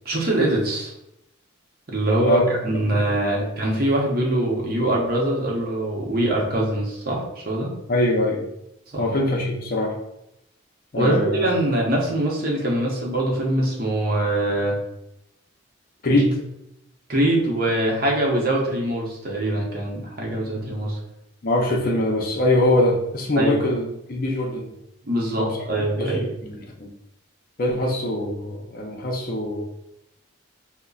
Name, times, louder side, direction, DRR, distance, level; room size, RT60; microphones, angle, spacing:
voice 1, 0.0-0.9 1.9-7.7 8.9-9.1 10.9-14.8 17.1-21.0 23.4-23.6 25.0-26.2, right 1 dB, 45° right, -1 dB, 0.8 m, -23 dB
voice 2, 7.9-8.5 9.0-10.0 10.9-11.5 16.0-16.4 20.6-20.7 21.4-24.7 25.4-25.6 26.0-26.9 27.6-29.6, left 1 dB, 45° left, 0 dB, 0.5 m, -23 dB
5.2 x 2.1 x 2.3 m, 0.83 s
head